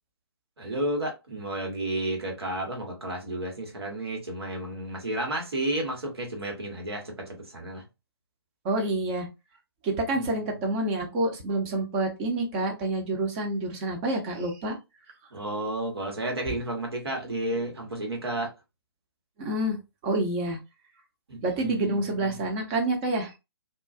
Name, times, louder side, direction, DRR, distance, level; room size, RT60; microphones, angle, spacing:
voice 1, 0.6-7.8 10.1-10.7 15.3-18.5 21.3-22.4, right 1 dB, 70° right, 1.2 m, -32 dB
voice 2, 8.6-9.3 9.8-14.8 19.4-19.8 20.0-20.6 21.4-23.3, right 2 dB, 25° right, 0.7 m, -28 dB
2.3 x 2.2 x 2.6 m
figure-of-eight pair, 135°, 14 cm